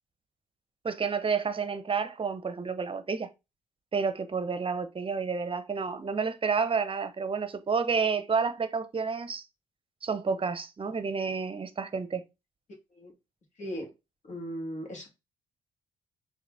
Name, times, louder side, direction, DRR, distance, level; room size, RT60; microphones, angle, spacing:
voice 1, 0.8-3.3 3.9-9.4 10.0-12.2, right 5 dB, 35° right, 0.8 m, -30 dB
voice 2, 13.6-13.9 14.2-15.1, equal, 50° left, 1.9 m, -37 dB
4.9 x 2.9 x 3.4 m
hypercardioid pair, 50°, 16 cm